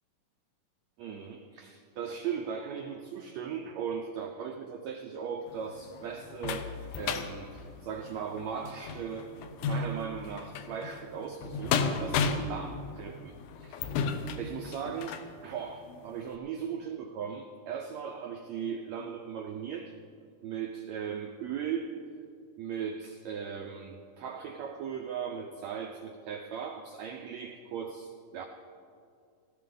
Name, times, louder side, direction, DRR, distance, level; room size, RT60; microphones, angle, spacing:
voice 1, 1.0-9.3 9.6-14.0 14.4-19.9 20.4-21.9 22.6-28.5, right 7 dB, 90° right, 4 dB, 1.5 m, -38 dB
sound 1, 5.5-15.3 15.9-16.0 16.3-16.4, left 5 dB, 75° left, 2.1 m, -34 dB
18.0 x 14.5 x 3.9 m, 2.4 s
omnidirectional pair, 4.0 m